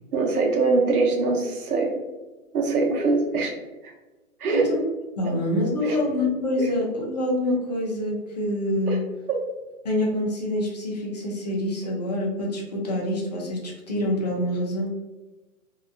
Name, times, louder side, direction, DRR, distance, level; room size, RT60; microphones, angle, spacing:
voice 1, 0.1-1.9 2.5-3.5 3.8-3.9 4.4-4.7 5.8-6.0 6.6-6.7 8.9-9.0 9.3-9.4, right 3 dB, 85° right, 1 dB, 0.9 m, -23 dB
voice 2, 4.5-4.8 5.2-9.0 9.8-14.9, left 1 dB, 30° left, -2 dB, 0.4 m, -26 dB
2.7 x 2.1 x 2.5 m, 1.1 s
hypercardioid pair, 155°, 43 cm